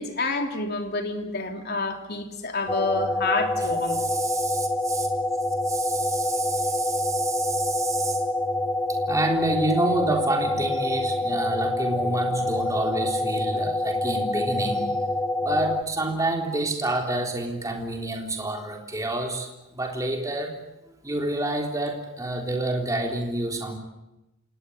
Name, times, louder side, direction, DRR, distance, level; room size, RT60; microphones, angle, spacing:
voice 1, 0.0-4.0, left 3 dB, 50° left, 4 dB, 3.5 m, -28 dB
sound 1, 2.7-15.8, left 2 dB, 10° left, 1.2 m, -26 dB
voice 2, 3.9-5.1 5.7-8.2 8.9-14.9 15.4-20.5 21.0-23.8, right 2 dB, 15° right, 2 dB, 3.6 m, -28 dB
27.5 x 19.5 x 8.1 m, 0.95 s
head